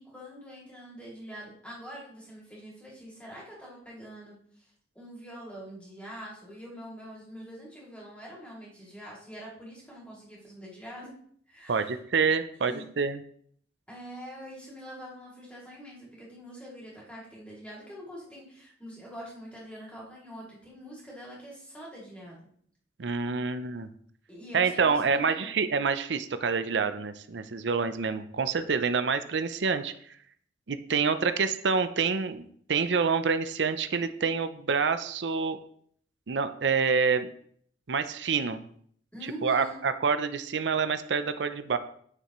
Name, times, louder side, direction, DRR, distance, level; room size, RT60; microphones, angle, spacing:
voice 1, 0.0-4.6 4.9-11.1 11.5-12.0 12.6-12.9 13.9-22.5 24.3-25.5 39.1-39.8, equal, 5° left, -5 dB, 2.7 m, -44 dB
voice 2, 11.7-13.2 23.0-23.9 24.5-29.9 30.7-35.6 36.3-37.3 37.9-38.6 39.4-41.8, right 5 dB, 90° right, 10 dB, 0.6 m, -27 dB
9.1 x 6.6 x 3.1 m, 0.62 s
head